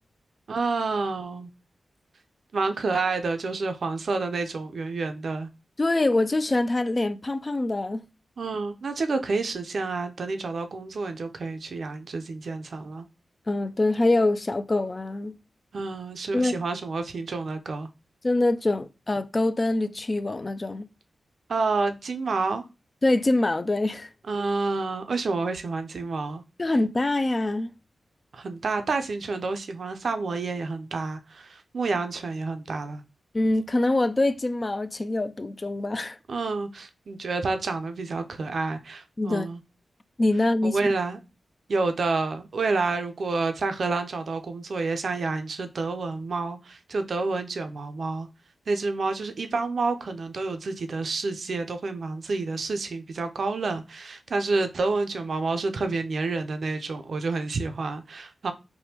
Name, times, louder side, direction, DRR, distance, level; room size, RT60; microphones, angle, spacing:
voice 1, 0.5-1.5 2.5-5.5 8.4-13.1 15.7-17.9 21.5-22.6 24.3-26.4 28.3-33.0 36.3-39.6 40.6-41.2 41.7-48.3 48.7-58.5, right 3 dB, 70° right, 0.4 m, -29 dB
voice 2, 5.8-8.0 13.5-15.4 16.3-16.5 18.2-20.9 23.0-24.1 26.6-27.7 33.3-36.2 39.2-39.5 40.2-40.8, left 2 dB, 40° left, 0.3 m, -24 dB
3.3 x 2.1 x 2.8 m
supercardioid pair, 40°, 0 cm